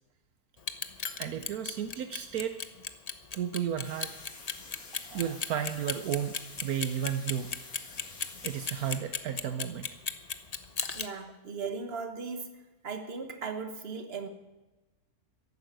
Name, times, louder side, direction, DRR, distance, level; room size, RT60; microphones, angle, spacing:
Clock, 0.6-11.1, left 5 dB, 40° left, 0.6 m, -35 dB
voice 1, 1.1-2.6 3.3-4.2 5.1-7.6 8.4-9.9, right 9 dB, 70° right, 9 dB, 1.2 m, -33 dB
sound 1, 3.8-9.0, left 3 dB, 60° left, 2.5 m, -49 dB
voice 2, 10.9-14.3, right 5 dB, 40° right, 7 dB, 1.5 m, -38 dB
14.0 x 11.0 x 7.6 m, 1.1 s
omnidirectional pair, 1.6 m